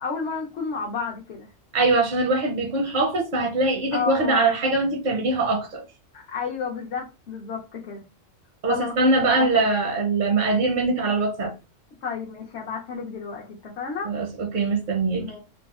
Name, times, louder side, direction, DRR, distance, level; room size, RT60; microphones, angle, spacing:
voice 1, 0.0-1.5 3.9-4.5 6.1-8.0 8.6-9.7 12.0-14.1 15.1-15.4, left 5 dB, 65° left, 0.9 m, -32 dB
voice 2, 1.7-5.8 8.6-11.5 14.0-15.3, right 3 dB, 55° right, 0.6 m, -22 dB
3.4 x 2.1 x 2.3 m
omnidirectional pair, 1.3 m